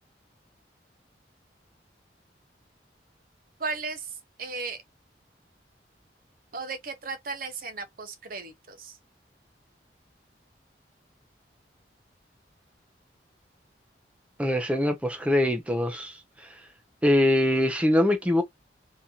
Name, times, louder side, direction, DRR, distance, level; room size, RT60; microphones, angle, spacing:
voice 1, 3.6-4.8 6.5-9.0, right 4 dB, 50° right, 0.8 m, -35 dB
voice 2, 14.4-16.6 17.0-18.4, left 1 dB, 5° right, 0.6 m, -23 dB
3.7 x 2.9 x 2.8 m
head